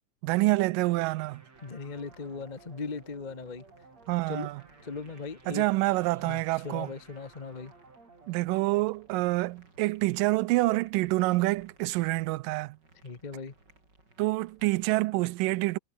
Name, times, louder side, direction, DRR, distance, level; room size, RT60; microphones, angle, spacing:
voice 1, 0.2-1.4 4.1-4.6 5.5-6.9 8.3-12.8 14.2-15.8, right 20 dB, 90° right, 2.3 m, -27 dB
sound 1, 0.8-10.2, right 3 dB, 50° right, 7.9 m, -57 dB
sound 2, 1.5-14.9, right 2 dB, 30° right, 7.5 m, -62 dB
voice 2, 1.6-3.6 4.3-4.5 4.8-5.7 6.2-7.7 13.0-13.5, left 4 dB, 80° left, 0.4 m, -38 dB
omnidirectional pair, 3.8 m